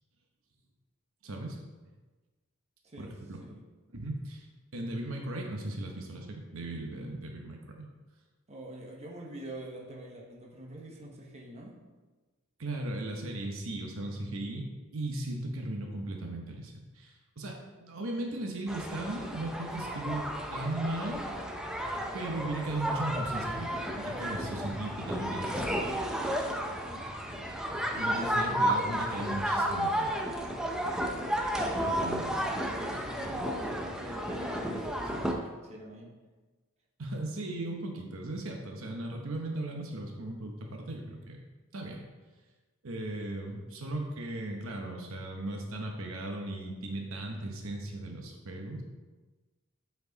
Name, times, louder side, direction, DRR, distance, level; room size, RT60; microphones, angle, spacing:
voice 1, 1.2-1.6 3.0-3.4 3.9-7.8 12.6-14.7 14.9-21.2 22.1-25.7 27.9-30.1 31.9-32.3 37.0-41.4 41.7-42.0 42.8-48.8, right 1 dB, 65° right, 1 dB, 0.9 m, -37 dB
voice 2, 8.5-11.8 31.6-36.1, right 1 dB, 30° right, -2 dB, 1.1 m, -45 dB
sound 1, 18.7-35.3, equal, 5° right, 0.5 m, -32 dB
8.1 x 4.6 x 4.0 m, 1.3 s
head